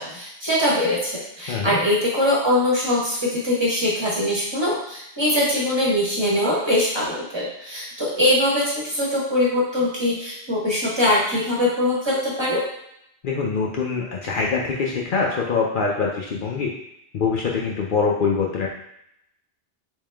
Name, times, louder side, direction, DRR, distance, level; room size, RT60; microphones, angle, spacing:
voice 1, 0.0-12.6, left 1 dB, 25° right, -6 dB, 1.1 m, -22 dB
voice 2, 13.2-16.7 17.1-18.7, left 5 dB, 60° left, -2 dB, 0.7 m, -24 dB
3.5 x 3.2 x 3.4 m, 0.77 s
omnidirectional pair, 1.1 m